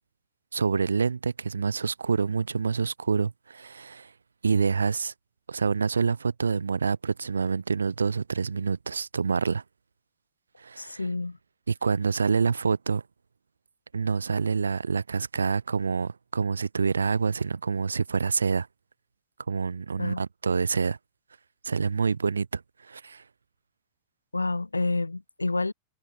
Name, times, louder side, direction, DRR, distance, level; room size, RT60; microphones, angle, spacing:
voice 1, 0.5-4.1 4.4-5.1 5.5-9.6 10.6-11.0 11.7-13.0 13.9-18.7 19.5-21.0 21.6-22.6 22.9-23.2, right 5 dB, 75° right, 1.5 m, -27 dB
voice 2, 10.8-11.4 20.0-20.2 24.3-25.7, left 3 dB, 80° left, 1.7 m, -29 dB
figure-of-eight pair, 90°, 0 cm